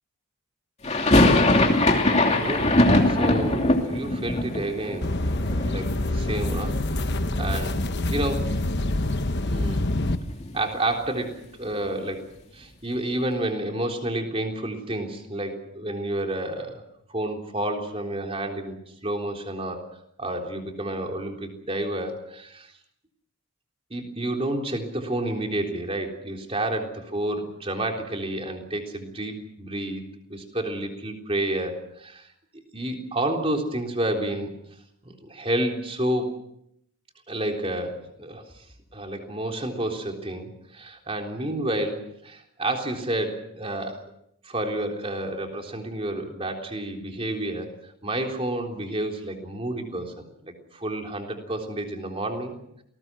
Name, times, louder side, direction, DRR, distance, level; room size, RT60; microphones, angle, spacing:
sound 1, 0.8-6.8 7.0-7.9 8.2-8.3 8.5-10.7, left 1 dB, 30° left, 2.8 m, -22 dB
voice 1, 2.0-2.7 3.1-5.2 5.6-8.5 9.4-9.9 10.5-12.3 12.5-16.8 17.1-18.8 19.0-19.8 20.2-22.7 23.9-30.0 30.3-32.3 32.7-34.5 35.0-36.3 37.3-38.6 38.9-44.1 44.4-52.6, right 1 dB, 25° right, 2 dB, 3.7 m, -30 dB
sound 2, 5.0-10.2, left 1 dB, 50° left, 1.1 m, -26 dB
28.5 x 19.5 x 6.2 m, 0.75 s
head